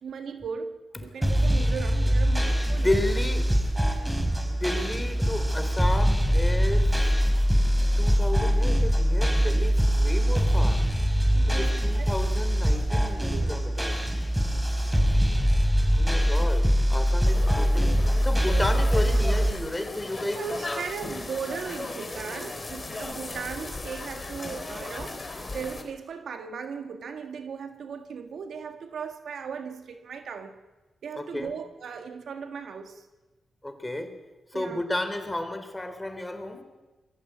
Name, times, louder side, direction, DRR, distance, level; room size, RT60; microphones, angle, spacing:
voice 1, 0.0-3.1 11.3-12.2 12.7-13.5 20.3-30.6 31.0-33.1 34.5-34.8, right 6 dB, 75° right, 1.6 m, -37 dB
sound 1, 1.2-19.5, equal, 10° right, 5.0 m, -23 dB
voice 2, 2.6-3.6 4.4-7.2 8.0-10.9 11.5-14.0 15.9-17.9 18.2-20.9 31.1-31.5 33.6-34.2 34.5-36.6, left 1 dB, 15° left, 3.7 m, -32 dB
sound 2, 17.2-25.8, left 2 dB, 40° left, 3.5 m, -36 dB
22.0 x 14.5 x 8.4 m
supercardioid pair, 45°, 0 cm